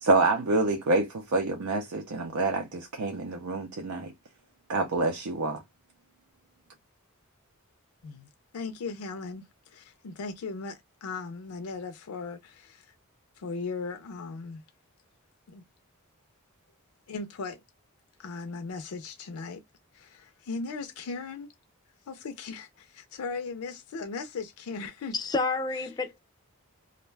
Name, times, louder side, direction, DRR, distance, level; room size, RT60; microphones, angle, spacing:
voice 1, 0.0-4.1 4.7-5.6, right 3 dB, 90° right, 0.5 m, -27 dB
voice 2, 8.0-12.9 13.4-14.6 15.5-15.6 17.1-17.6 18.2-19.6 19.9-21.5 22.1-25.2, left 4 dB, 85° left, 0.4 m, -38 dB
voice 3, 25.1-26.2, left 3 dB, 20° left, 0.4 m, -29 dB
2.5 x 2.2 x 3.2 m
head